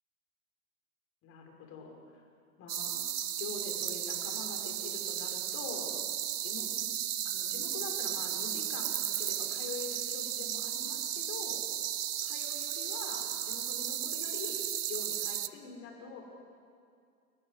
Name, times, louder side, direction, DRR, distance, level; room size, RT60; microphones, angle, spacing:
voice 1, 1.2-2.2 2.6-5.9 6.4-6.8 7.2-11.6 12.2-14.6 14.9-16.2, left 4 dB, 30° left, 2 dB, 5.7 m, -44 dB
sound 1, 2.7-15.5, right 10 dB, 80° right, 1.0 m, -35 dB
29.5 x 14.5 x 8.2 m, 2.3 s
hypercardioid pair, 115°, 46 cm